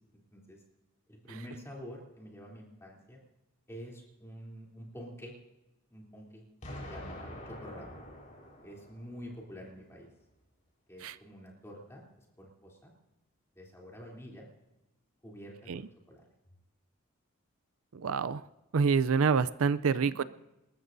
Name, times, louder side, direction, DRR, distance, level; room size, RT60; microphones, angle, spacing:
voice 1, 1.1-3.2 3.7-5.4 5.9-6.4 6.7-8.0 8.6-10.1 10.9-12.0 12.4-12.9 13.5-14.5 15.2-16.2, equal, 10° left, -3 dB, 3.2 m, -47 dB
Explosion, 6.6-9.6, left 1 dB, 35° left, 4.6 m, -46 dB
voice 2, 17.9-18.4 18.7-20.2, right 5 dB, 70° right, 15 dB, 0.5 m, -27 dB
27.5 x 13.5 x 2.7 m, 0.98 s
head